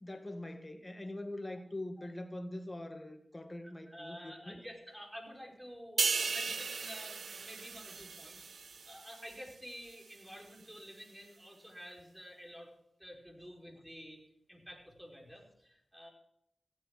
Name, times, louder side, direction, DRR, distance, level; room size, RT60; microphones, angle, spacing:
voice 1, 0.0-4.6, left 1 dB, 25° left, 7 dB, 2.0 m, -43 dB
voice 2, 3.6-12.7 13.0-14.2 14.5-16.1, equal, 5° right, 1 dB, 4.9 m, -50 dB
sound 1, 6.0-9.5 9.9-10.1, right 5 dB, 75° right, 0.5 m, -36 dB
15.5 x 9.2 x 6.0 m, 0.75 s
cardioid pair, 40°, 0 cm